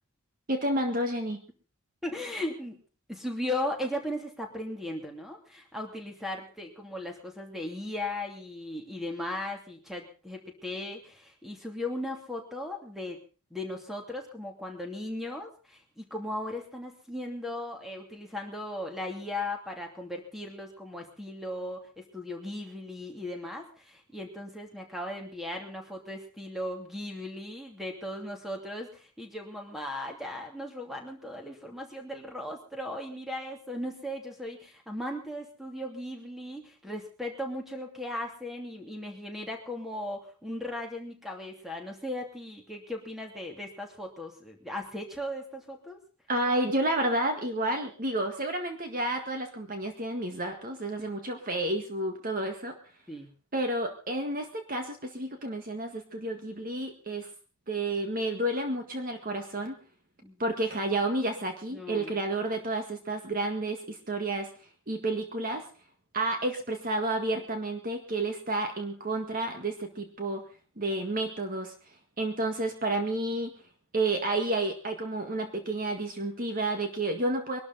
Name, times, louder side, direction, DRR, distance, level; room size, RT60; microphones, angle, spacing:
voice 1, 0.5-1.4 46.3-52.7 53.5-57.3 57.7-59.8 60.4-64.5 64.9-65.6 66.1-70.4 70.8-71.7 72.2-73.5 73.9-77.6, right 2 dB, 40° right, 5 dB, 1.8 m, -30 dB
voice 2, 2.0-2.8 3.1-13.2 13.5-46.0 53.1-53.3 60.2-60.4 61.7-62.2, left 1 dB, ahead, 2 dB, 2.9 m, -37 dB
23.0 x 12.5 x 4.1 m, 0.36 s
head